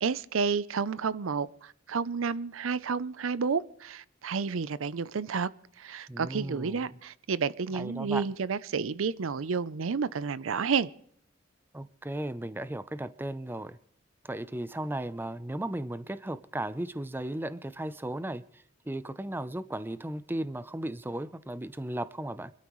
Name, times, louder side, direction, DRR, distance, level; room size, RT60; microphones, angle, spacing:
voice 1, 0.0-5.5 5.8-10.9, right 5 dB, 85° right, 0.5 m, -30 dB
voice 2, 6.1-7.0 7.7-8.2 11.7-13.8 14.2-22.5, right 1 dB, 10° right, 0.5 m, -36 dB
25.5 x 12.5 x 3.1 m
head